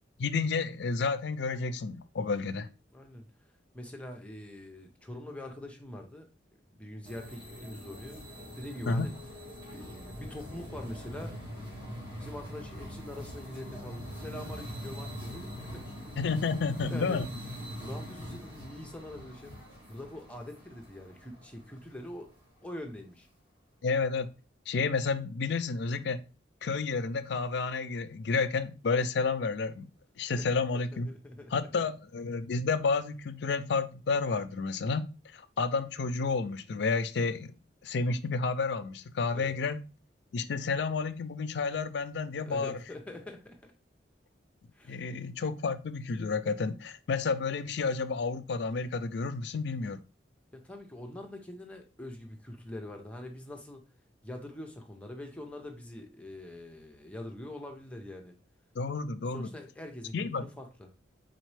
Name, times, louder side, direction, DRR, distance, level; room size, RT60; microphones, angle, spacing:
voice 1, 0.2-2.7 8.9-9.1 16.2-17.3 23.8-24.3 24.7-26.2 26.6-29.9 30.2-31.1 31.5-35.0 35.3-37.5 37.8-39.8 40.3-42.7 44.9-50.0 58.8-59.5 60.1-60.5, left 4 dB, 65° left, 0.4 m, -30 dB
voice 2, 2.9-3.3 3.7-8.2 8.5-9.1 9.7-11.3 12.1-15.9 16.8-17.2 17.8-19.6 19.9-22.3 22.6-23.3 30.4-30.5 30.7-31.9 39.3-39.5 42.5-43.7 44.7-45.0 50.5-53.8 54.2-58.4 59.3-60.9, left 1 dB, 5° left, 0.6 m, -44 dB
sound 1, 7.0-22.3, equal, 25° right, 1.8 m, -43 dB
4.1 x 3.9 x 3.2 m
head